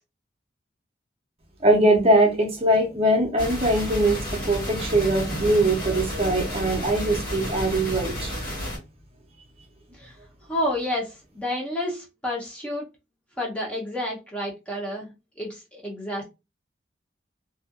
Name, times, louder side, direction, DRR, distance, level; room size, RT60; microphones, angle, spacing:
voice 1, 1.6-4.2 4.5-8.3, right 1 dB, 30° right, 0.6 m, -21 dB
sound 1, 3.4-8.8, equal, 50° left, 1.4 m, -31 dB
voice 2, 10.5-12.9 13.4-16.2, left 1 dB, 5° left, 0.6 m, -30 dB
2.6 x 2.4 x 2.4 m
head